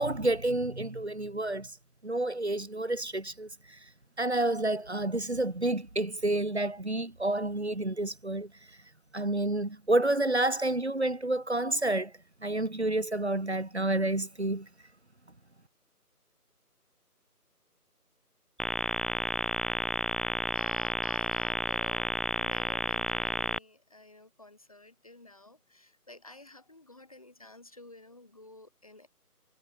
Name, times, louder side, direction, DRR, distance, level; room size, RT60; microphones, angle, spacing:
voice 1, 0.0-1.7 2.0-3.8 4.2-8.5 9.1-12.1 12.4-14.7, right 2 dB, 45° right, 3.6 m, -29 dB
sound 1, 18.6-23.6, equal, ahead, 0.3 m, -31 dB
voice 2, 20.5-22.1 22.4-29.1, left 2 dB, 20° left, 4.0 m, -53 dB
figure-of-eight pair, 175°, 46 cm